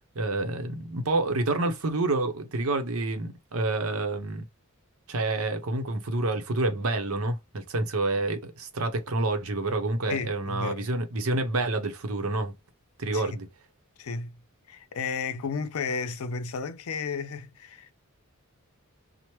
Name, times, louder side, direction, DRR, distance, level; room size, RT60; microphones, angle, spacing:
voice 1, 0.1-4.5 5.1-12.5 13.0-13.5, right 2 dB, 80° right, 0.7 m, -28 dB
voice 2, 10.1-10.9 13.1-13.3 14.0-14.4 14.7-17.9, left 5 dB, 80° left, 0.5 m, -33 dB
3.0 x 2.1 x 3.0 m
head